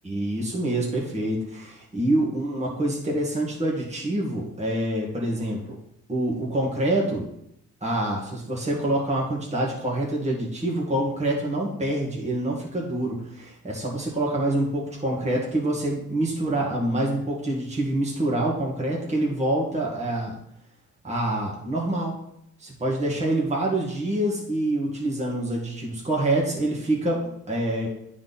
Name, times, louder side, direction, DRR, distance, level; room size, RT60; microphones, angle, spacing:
voice 1, 0.0-5.8 6.1-7.3 7.8-20.3 21.0-22.1 22.6-27.2 27.5-27.9, right 1 dB, 20° right, -3 dB, 1.9 m, -26 dB
9.5 x 3.9 x 4.1 m, 0.75 s
cardioid pair, 90°, 30 cm